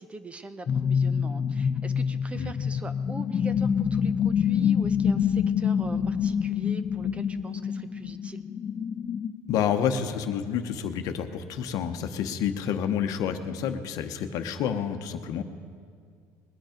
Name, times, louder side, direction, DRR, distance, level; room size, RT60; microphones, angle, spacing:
voice 1, 0.0-8.4, right 3 dB, 15° right, 11 dB, 0.6 m, -42 dB
sound 1, 0.7-9.3, left 7 dB, 35° left, 0.5 m, -26 dB
voice 2, 9.5-15.4, left 8 dB, 60° left, 7 dB, 0.9 m, -29 dB
20.5 x 9.0 x 5.1 m, 2.2 s
cardioid pair, 120°, 7 cm